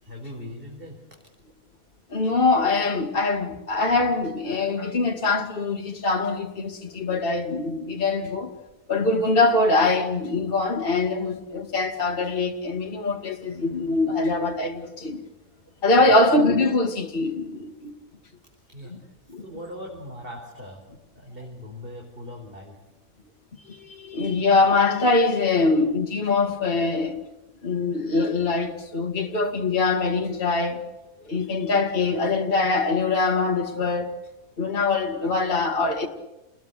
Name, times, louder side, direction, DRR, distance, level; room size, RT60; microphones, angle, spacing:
voice 1, 0.0-1.2 8.2-8.4 16.0-16.1 18.7-19.1 19.4-20.9 21.1-22.8, left 1 dB, 35° right, 4.8 m, -40 dB
voice 2, 2.1-8.5 8.9-15.2 15.8-17.9 19.3-19.4 23.7-27.2 27.6-30.8 31.3-34.1 34.6-36.1, left 3 dB, 35° left, 2.2 m, -23 dB
29.5 x 20.5 x 8.2 m
omnidirectional pair, 1.6 m